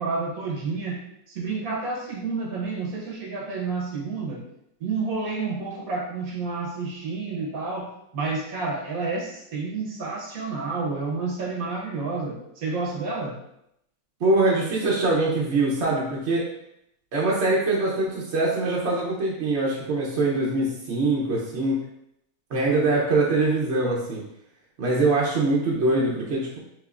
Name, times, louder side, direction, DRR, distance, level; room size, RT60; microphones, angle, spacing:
voice 1, 0.0-4.4 4.8-13.4, right 4 dB, 80° right, -2 dB, 1.5 m, -30 dB
voice 2, 14.2-16.5 17.1-21.8 22.5-24.2 24.8-26.6, right 2 dB, 55° right, -4 dB, 1.0 m, -23 dB
6.1 x 2.9 x 2.4 m, 0.78 s
omnidirectional pair, 1.5 m